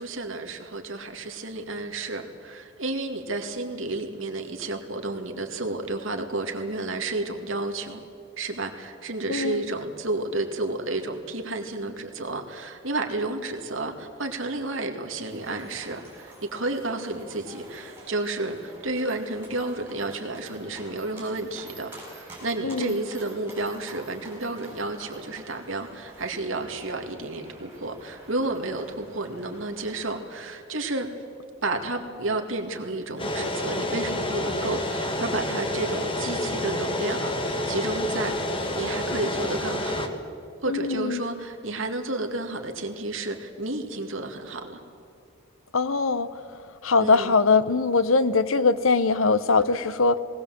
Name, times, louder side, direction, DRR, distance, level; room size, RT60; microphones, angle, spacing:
voice 1, 0.0-8.0 8.4-31.1 31.6-40.1 40.6-44.8 47.0-47.4, right 2 dB, 75° right, 4 dB, 2.1 m, -31 dB
voice 2, 9.3-9.6 22.6-23.0 40.7-41.2 45.7-46.3 46.8-50.2, left 4 dB, 80° left, 14 dB, 0.9 m, -22 dB
sound 1, 15.3-30.2, right 1 dB, 10° right, 6.8 m, -48 dB
sound 2, 33.2-40.1, left 1 dB, 25° left, 1.6 m, -28 dB
19.0 x 18.5 x 7.7 m, 2.7 s
head